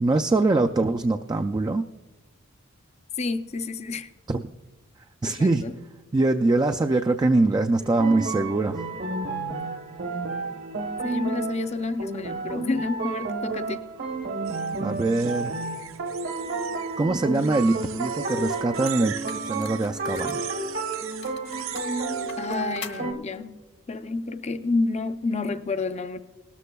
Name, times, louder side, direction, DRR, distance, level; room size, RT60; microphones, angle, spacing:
voice 1, 0.0-1.8 4.3-4.4 5.2-5.7 6.1-8.8 14.8-15.6 17.0-19.2 19.4-20.4, right 2 dB, 20° right, 6 dB, 0.3 m, -23 dB
voice 2, 3.2-4.1 5.2-5.7 11.0-13.9 22.4-23.5 23.9-26.2, left 3 dB, 35° left, 10 dB, 0.5 m, -29 dB
sound 1, 7.7-23.1, right 3 dB, 55° right, 1.0 m, -31 dB
sound 2, 14.4-17.0 17.3-22.4, right 11 dB, 70° right, 0.6 m, -40 dB
sound 3, 18.2-18.3 18.8-20.5 20.9-23.0, left 7 dB, 60° left, 1.1 m, -43 dB
18.5 x 13.0 x 2.3 m, 1.2 s
head